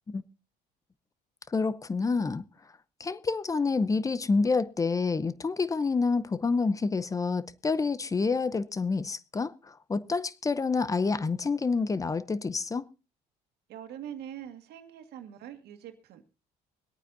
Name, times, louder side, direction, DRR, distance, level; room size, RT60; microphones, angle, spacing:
voice 1, 1.5-2.4 3.0-12.9, left 4 dB, 20° left, 0.7 m, -28 dB
voice 2, 13.7-16.2, right 10 dB, 75° right, 1.9 m, -43 dB
24.0 x 9.0 x 2.7 m
cardioid pair, 110°, 17 cm